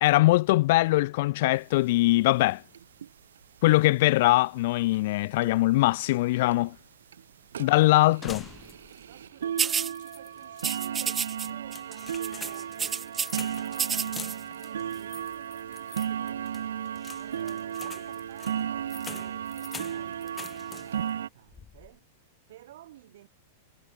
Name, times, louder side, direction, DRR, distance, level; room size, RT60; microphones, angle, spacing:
voice 1, 0.0-2.6 3.6-6.7 7.6-8.4, left 19 dB, 60° left, 0.5 m, -22 dB
sound 1, 1.6-1.7 1.9-2.0 2.2-2.4 2.7-3.1 3.8-3.9 4.5-4.6 4.9-5.0 5.4-5.5 6.0-6.1 6.5-6.7 7.1-7.2 7.5-21.3, right 9 dB, 90° right, 1.2 m, -35 dB
voice 2, 7.5-8.4 9.1-16.8 17.2-22.1 22.5-23.3, right 14 dB, 70° right, 7.1 m, -52 dB
sound 2, 8.2-9.1 9.4-9.5 9.9-10.8 11.4-21.1 21.5-22.0, left 6 dB, 15° left, 5.6 m, -45 dB
sound 3, 9.6-9.9 10.6-11.5 11.7-11.9 12.2-13.4 13.7-14.3, right 7 dB, 20° right, 0.4 m, -29 dB
hypercardioid pair, 130°, 0 cm